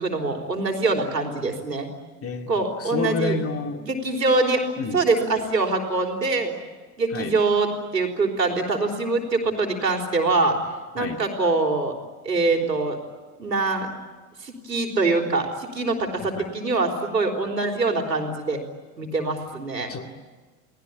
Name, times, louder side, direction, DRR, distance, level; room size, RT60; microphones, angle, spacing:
voice 1, 0.0-1.9 2.5-3.3 3.8-4.6 4.9-6.5 7.0-10.6 10.9-11.9 12.2-13.0 13.4-13.9 14.4-18.6 19.0-19.9, right 3 dB, 80° right, 3 dB, 3.9 m, -24 dB
voice 2, 2.2-3.8 4.8-5.0 7.1-7.3 11.0-11.2 16.3-16.5 19.9-20.2, left 3 dB, 25° left, 5 dB, 2.5 m, -29 dB
30.0 x 19.5 x 10.0 m, 1.4 s
figure-of-eight pair, 85°, 49 cm